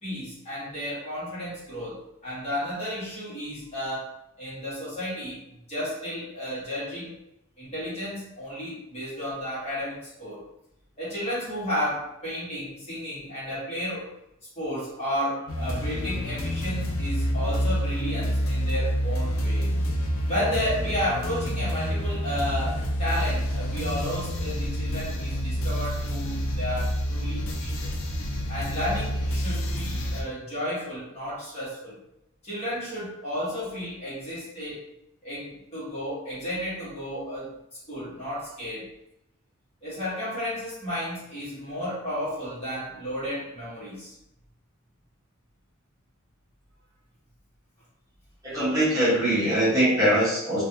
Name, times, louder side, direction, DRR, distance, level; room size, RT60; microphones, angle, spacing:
voice 1, 0.0-5.4 5.7-7.2 7.6-10.4 11.0-14.1 14.5-19.7 20.3-27.8 28.5-32.0 32.4-34.9 35.2-37.5 37.9-38.9 39.8-44.1, equal, 30° left, -9 dB, 1.4 m, -32 dB
sound 1, 15.5-30.2, equal, 75° left, 0.5 m, -28 dB
voice 2, 48.4-50.6, right 1 dB, 15° right, -10 dB, 1.1 m, -22 dB
3.1 x 2.4 x 2.8 m, 0.84 s
head